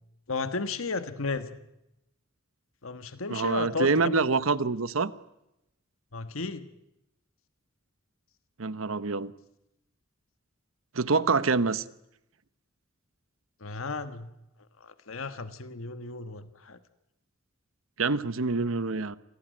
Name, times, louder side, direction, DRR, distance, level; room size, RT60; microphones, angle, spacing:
voice 1, 0.3-1.5 2.8-4.2 6.1-6.6 13.6-14.3 14.8-16.8, left 3 dB, 80° left, 1.4 m, -34 dB
voice 2, 3.3-5.1 8.6-9.3 10.9-11.8 18.0-19.2, right 4 dB, 75° right, 1.0 m, -26 dB
27.0 x 18.5 x 9.2 m
head